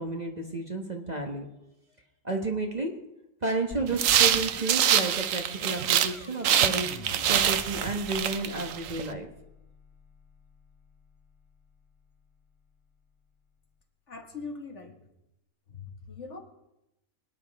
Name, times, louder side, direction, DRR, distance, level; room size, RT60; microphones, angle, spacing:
voice 1, 0.0-1.4 2.2-2.9 3.4-6.9 7.3-9.3, right 3 dB, 30° right, 2 dB, 1.3 m, -31 dB
sound 1, 3.7-13.3, left 3 dB, 25° left, 0.8 m, -47 dB
sound 2, 3.9-6.1 6.4-9.0, right 10 dB, 70° right, 1.0 m, -25 dB
voice 2, 14.1-14.9 15.7-16.4, left 4 dB, 55° left, 3 dB, 1.8 m, -41 dB
24.5 x 9.7 x 3.5 m, 0.90 s
omnidirectional pair, 1.5 m